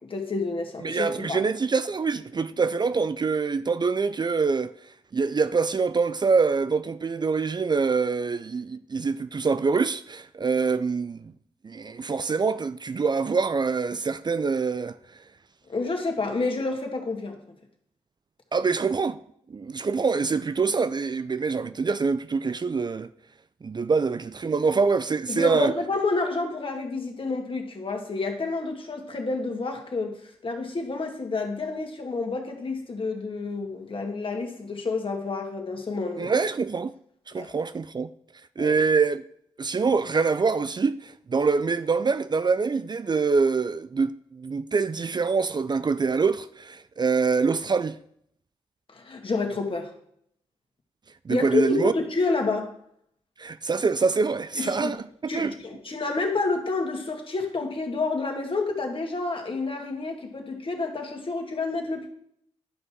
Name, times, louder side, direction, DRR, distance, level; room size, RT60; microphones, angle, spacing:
voice 1, 0.0-1.4 15.7-17.4 25.3-36.3 37.4-37.5 38.6-38.8 48.9-49.9 51.3-52.7 54.6-54.9 55.3-62.1, left 3 dB, 45° left, 2.1 m, -29 dB
voice 2, 0.8-4.7 5.1-11.3 11.6-15.0 18.5-19.2 19.5-23.1 23.6-25.7 36.2-36.9 37.3-38.1 38.6-39.2 39.6-47.9 51.3-51.9 53.4-55.5, right 4 dB, 35° right, 0.5 m, -25 dB
11.0 x 5.4 x 4.7 m
supercardioid pair, 45°, 12 cm